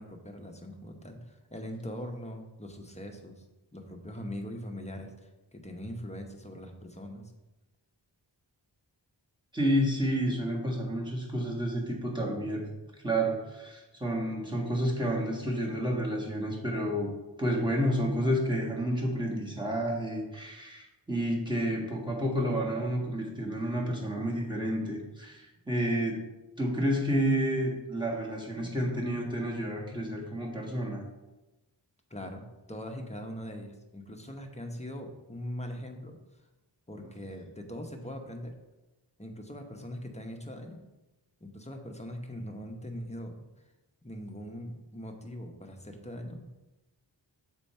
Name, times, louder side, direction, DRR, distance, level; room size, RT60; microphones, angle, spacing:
voice 1, 0.0-3.4 3.7-7.3 32.1-32.4 32.7-36.2 36.9-38.5 39.2-40.8 41.4-43.5 44.0-46.5, equal, 15° left, 3 dB, 0.9 m, -41 dB
voice 2, 9.5-12.6 13.0-17.1 17.4-26.2 26.6-31.0, equal, 10° right, -3 dB, 1.6 m, -30 dB
7.0 x 4.5 x 4.4 m, 1.0 s
wide cardioid pair, 65°, 44 cm